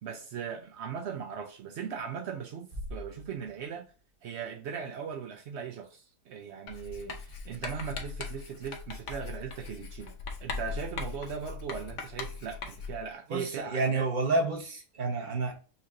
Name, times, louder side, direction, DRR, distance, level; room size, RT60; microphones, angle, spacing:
voice 1, 0.0-3.9 4.2-10.1 10.4-14.1, right 7 dB, 70° right, 0.6 m, -39 dB
Bass drum, 2.7-4.4, equal, 50° right, 1.6 m, -44 dB
Writing, 6.7-13.1, left 5 dB, 55° left, 1.0 m, -40 dB
voice 2, 13.3-15.5, right 3 dB, 35° right, 1.1 m, -29 dB
5.6 x 3.0 x 2.5 m
omnidirectional pair, 1.7 m